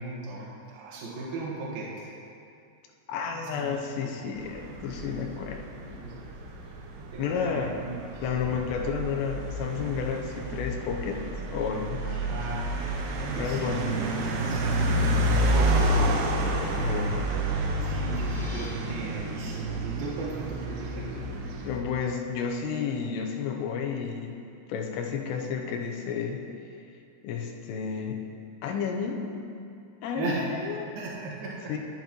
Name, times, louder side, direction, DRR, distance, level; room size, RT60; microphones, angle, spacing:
voice 1, 0.0-2.1 3.3-4.4 5.8-6.1 7.1-8.4 12.0-12.7 13.1-13.8 14.2-15.1 15.4-16.4 17.8-21.3 30.2-30.6 31.0-31.7, right 3 dB, 65° right, -6 dB, 3.0 m, -37 dB
voice 2, 3.1-5.6 7.2-7.7 8.2-12.0 13.4-14.1 16.8-17.3 21.6-24.4 24.7-26.4 27.2-28.2 28.6-29.3 30.0-30.9 31.7-31.8, left 6 dB, 85° left, 2 dB, 2.7 m, -31 dB
sound 1, 4.4-21.8, right 1 dB, 85° right, 3.0 m, -29 dB
sound 2, 17.8-18.6, left 2 dB, 45° left, 1.1 m, -48 dB
14.0 x 6.9 x 3.0 m, 2.5 s
omnidirectional pair, 5.2 m